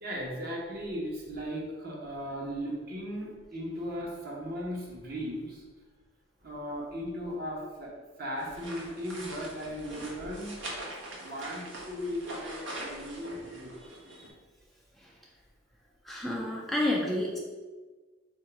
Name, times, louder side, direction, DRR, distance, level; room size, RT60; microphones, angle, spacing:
voice 1, 0.0-5.6 6.4-7.9 8.2-10.6 11.2-14.1, equal, 55° right, -3 dB, 1.1 m, -37 dB
sound 1, 8.4-14.3, right 1 dB, 75° right, 1.0 m, -43 dB
voice 2, 13.8-14.3 15.0-15.1 16.0-17.4, left 1 dB, ahead, -3 dB, 0.4 m, -31 dB
3.8 x 2.7 x 4.6 m, 1.3 s
head